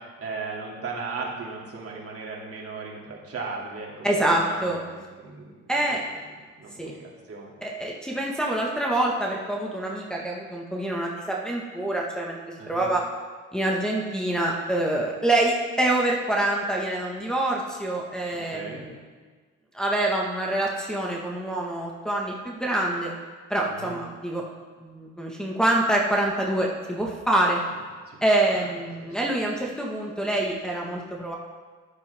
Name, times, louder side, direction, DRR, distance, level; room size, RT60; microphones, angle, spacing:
voice 1, 0.2-5.6 5.9-6.0 6.6-7.0 7.3-7.5 12.6-12.9 18.3-18.8 23.6-24.0 28.1-28.6 29.0-29.2, right 4 dB, 50° right, -3 dB, 2.8 m, -37 dB
voice 2, 4.0-4.8 5.7-6.0 6.8-6.9 7.6-13.0 13.5-18.9 19.7-23.1 23.5-24.4 24.8-27.6 28.2-31.4, right 1 dB, ahead, -3 dB, 1.6 m, -26 dB
13.0 x 10.5 x 3.6 m, 1.4 s
cardioid pair, 90°, 30 cm